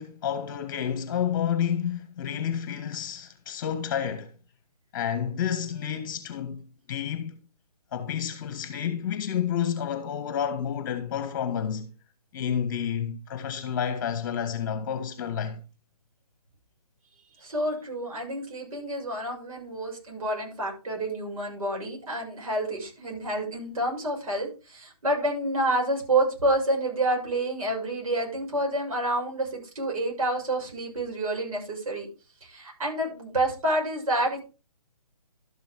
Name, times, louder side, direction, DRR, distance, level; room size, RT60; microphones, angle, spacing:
voice 1, 0.0-4.3 4.9-7.4 7.9-11.9 12.3-15.6, left 8 dB, 30° left, 1.6 m, -30 dB
voice 2, 17.4-32.1 32.4-34.4, right 1 dB, 60° right, 6.9 m, -28 dB
12.5 x 6.8 x 3.7 m
hypercardioid pair, 160°, 20 cm